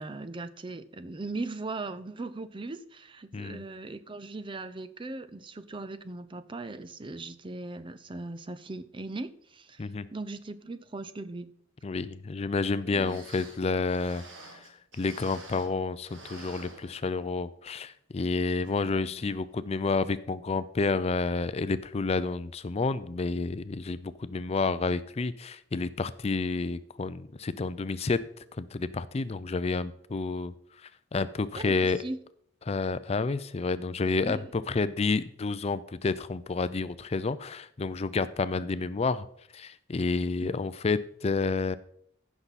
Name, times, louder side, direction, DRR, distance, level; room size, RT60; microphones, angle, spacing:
voice 1, 0.0-11.5 12.8-13.2 18.8-19.3 31.5-32.2 34.2-34.5 40.4-40.6, right 2 dB, 25° right, 0.6 m, -39 dB
voice 2, 11.8-14.2 14.5-28.2 28.6-30.5 30.8-32.0 32.7-39.3 39.5-41.8, left 4 dB, 35° left, 0.4 m, -30 dB
sound 1, 12.7-12.8 13.0-17.4 17.8-17.9 18.6-18.8 19.3-19.4, right 2 dB, 85° right, 2.2 m, -49 dB
15.5 x 6.0 x 4.1 m
head